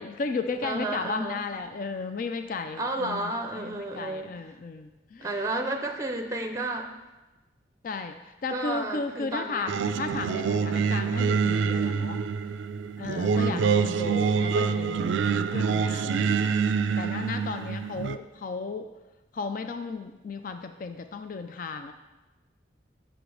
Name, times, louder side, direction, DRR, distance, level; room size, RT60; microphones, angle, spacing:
voice 1, 0.0-5.3 7.8-12.2 13.0-16.5 17.0-18.9 19.3-21.9, left 4 dB, 45° left, 8 dB, 0.4 m, -34 dB
voice 2, 0.6-1.5 2.8-4.3 5.2-6.9 8.5-9.8 13.3-13.8, right 2 dB, 15° right, 4 dB, 0.6 m, -32 dB
Singing, 9.7-18.2, right 6 dB, 80° right, 0.3 m, -26 dB
6.1 x 5.0 x 6.3 m, 1.1 s
head